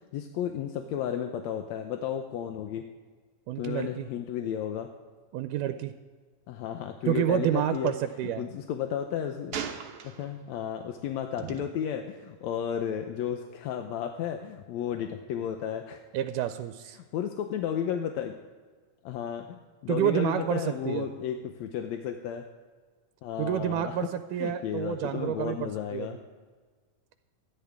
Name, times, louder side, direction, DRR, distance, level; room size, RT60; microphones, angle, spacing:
voice 1, 0.1-2.8 3.6-4.9 6.5-7.9 8.2-9.6 10.0-16.0 17.1-18.3 19.0-22.5 23.2-24.0 24.4-26.2, left 9 dB, 75° left, 5 dB, 1.8 m, -33 dB
voice 2, 3.5-4.1 5.3-5.9 7.1-8.5 11.4-11.6 16.1-17.0 19.9-21.1 23.4-26.2, right 11 dB, 85° right, 9 dB, 2.1 m, -29 dB
Gunshot gunfire, 7.7-7.9 9.5-10.5 11.4-11.6, right 7 dB, 60° right, 1.7 m, -37 dB
24.0 x 10.5 x 3.6 m, 1.5 s
omnidirectional pair, 3.7 m